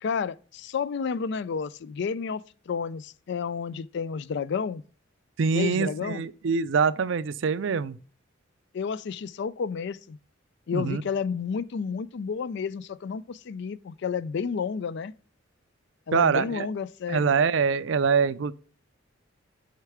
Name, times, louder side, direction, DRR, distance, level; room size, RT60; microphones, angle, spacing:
voice 1, 0.0-4.8 5.5-6.2 8.7-10.2 10.7-15.1 16.1-17.4, left 6 dB, 60° left, 0.4 m, -31 dB
voice 2, 5.4-8.0 10.7-11.0 16.1-16.7 17.1-18.5, right 5 dB, 65° right, 0.4 m, -24 dB
6.5 x 4.6 x 4.9 m
head